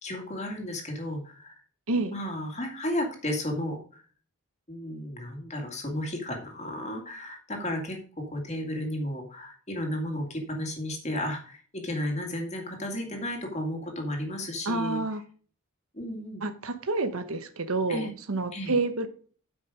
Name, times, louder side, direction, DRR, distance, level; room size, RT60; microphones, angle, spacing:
voice 1, 0.0-1.6 2.1-4.0 4.7-8.0 8.3-15.0 15.9-16.4 17.9-18.1 18.5-18.7, left 1 dB, 30° left, 2 dB, 2.2 m, -33 dB
voice 2, 14.6-15.2 16.4-19.1, right 3 dB, 70° right, 10 dB, 1.0 m, -29 dB
8.8 x 6.0 x 4.9 m, 0.43 s
head